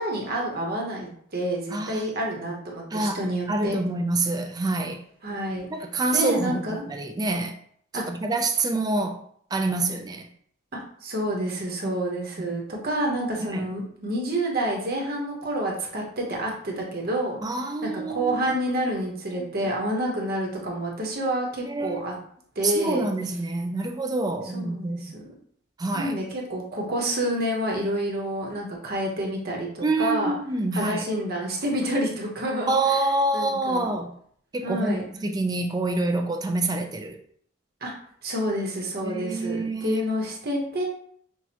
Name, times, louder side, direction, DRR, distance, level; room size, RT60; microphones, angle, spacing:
voice 1, 0.0-3.8 5.2-5.7 6.1-6.9 7.9-8.0 10.7-17.4 17.8-22.2 22.5-23.1 24.5-25.2 25.9-30.3 30.7-33.0 33.3-33.9 34.6-35.0 37.8-37.9 38.2-40.9, right 1 dB, 45° right, -1 dB, 0.9 m, -28 dB
voice 2, 1.7-2.2 2.9-3.2 3.5-5.0 5.7-7.5 7.9-9.2 9.5-10.3 11.8-11.9 12.4-12.5 13.5-13.7 17.4-18.4 19.4-19.5 21.6-22.2 22.6-25.0 25.8-26.1 29.8-31.1 32.7-34.1 34.5-37.2 39.0-40.0, right 2 dB, 20° right, 5 dB, 0.3 m, -27 dB
6.1 x 2.3 x 2.8 m, 0.62 s
head